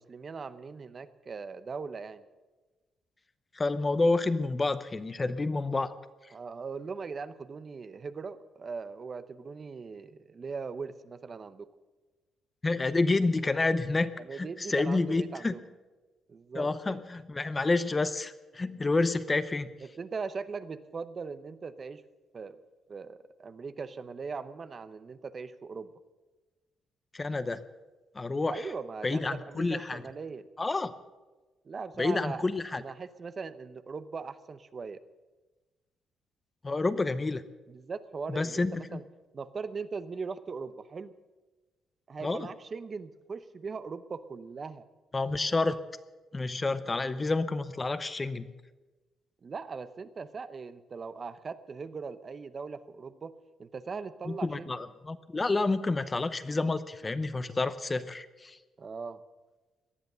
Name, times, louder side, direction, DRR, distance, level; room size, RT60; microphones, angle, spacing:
voice 1, 0.0-2.2 6.3-11.7 14.2-15.6 16.3-17.0 19.8-22.0 22.3-22.6 22.9-25.9 28.5-30.5 31.6-32.4 32.7-35.0 37.7-39.0 39.3-41.1 42.1-44.8 49.4-54.8 58.8-59.2, right 5 dB, 35° right, 13 dB, 0.7 m, -40 dB
voice 2, 3.5-6.0 12.6-15.5 16.5-19.7 27.1-27.6 28.1-28.7 29.0-30.0 30.6-30.9 32.0-32.8 36.6-37.4 38.3-39.0 42.2-42.5 45.1-45.8 46.3-48.5 54.3-58.6, left 3 dB, 20° left, 13 dB, 0.7 m, -29 dB
18.5 x 11.5 x 6.8 m, 1.2 s
cardioid pair, 115°, 0 cm